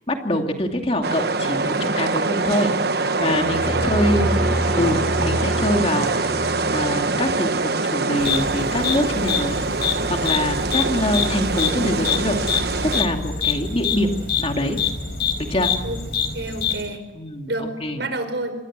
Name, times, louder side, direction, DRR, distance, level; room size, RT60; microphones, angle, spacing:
voice 1, 0.1-2.7 3.2-4.3 4.8-12.4 12.8-14.1 14.4-14.8 15.4-15.7 17.1-18.0, left 1 dB, 30° left, 3 dB, 2.7 m, -24 dB
sound 1, 1.0-13.0, right 3 dB, 60° right, 1.1 m, -24 dB
sound 2, 3.3-7.6, equal, ahead, 2.9 m, -27 dB
voice 2, 4.2-4.5 15.8-16.0 16.3-17.0 17.5-17.7 18.0-18.5, right 2 dB, 75° right, 8 dB, 5.4 m, -29 dB
sound 3, 8.2-16.8, left 6 dB, 65° left, 4.1 m, -26 dB
26.5 x 22.0 x 7.6 m, 1.1 s
head